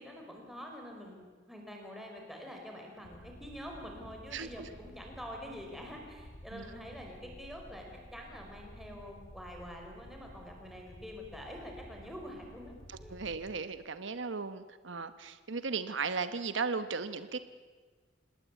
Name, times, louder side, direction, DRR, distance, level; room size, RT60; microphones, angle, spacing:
voice 1, 0.0-12.7 13.0-13.1, equal, ahead, 1 dB, 5.0 m, -46 dB
sound 1, 3.0-13.6, equal, 80° left, 5.8 m, -53 dB
voice 2, 4.3-4.7 6.5-6.6 12.9-17.4, right 4 dB, 85° right, 11 dB, 1.1 m, -36 dB
26.5 x 19.5 x 8.3 m, 1.5 s
head